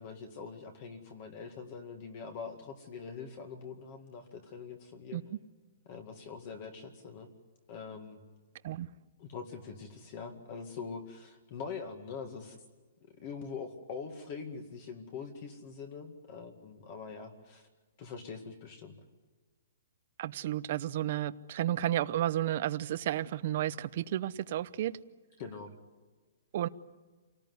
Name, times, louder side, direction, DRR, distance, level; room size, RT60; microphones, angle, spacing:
voice 1, 0.0-5.2 5.9-7.3 7.7-8.2 9.2-12.6 13.0-17.7 18.0-19.0 25.4-25.7, left 5 dB, 35° left, 2.1 m, -43 dB
voice 2, 20.2-24.9 26.5-26.7, right 12 dB, 40° right, 0.8 m, -32 dB
28.0 x 19.0 x 9.6 m
hypercardioid pair, 170°, 0 cm